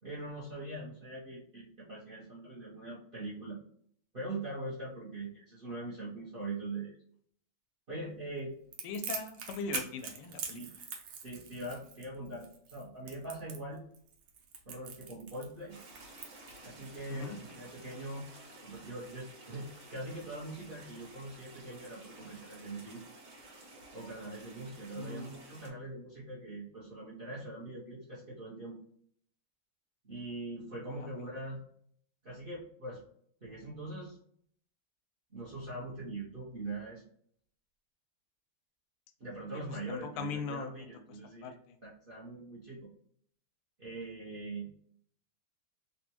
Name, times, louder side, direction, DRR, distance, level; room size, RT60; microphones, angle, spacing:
voice 1, 0.0-3.6 4.1-6.9 7.9-8.5 10.5-10.7 11.2-13.8 14.7-15.8 16.6-18.3 18.6-23.0 23.9-28.8 30.0-31.6 32.2-33.0 33.4-34.2 35.3-37.0 39.2-41.5 41.8-42.9 43.8-44.7, right 2 dB, 70° right, -7 dB, 0.5 m, -42 dB
Crackle, 8.7-17.0, right 6 dB, 90° right, 1.6 m, -43 dB
voice 2, 8.8-10.6 17.1-17.4 24.9-25.4 31.0-31.1 39.9-40.7 41.4-41.8, left 5 dB, 90° left, 7 dB, 1.5 m, -40 dB
sound 1, 15.7-25.7, right 2 dB, 55° right, 1.6 m, -53 dB
4.1 x 2.2 x 2.9 m, 0.63 s
omnidirectional pair, 2.4 m